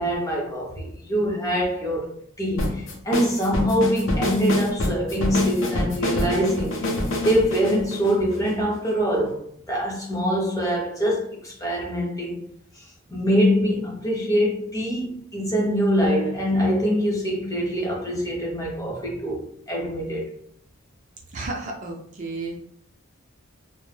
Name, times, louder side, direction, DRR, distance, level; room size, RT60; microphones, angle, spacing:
voice 1, 0.0-2.1 2.4-6.9 7.2-9.4 9.7-12.5 12.8-12.9 13.1-20.3, equal, 15° left, 0.6 m, -24 dB
sound 1, 2.6-8.9, left 1 dB, 65° left, 0.5 m, -26 dB
voice 2, 21.3-22.6, right 3 dB, 35° right, 0.4 m, -32 dB
2.1 x 2.1 x 3.1 m
head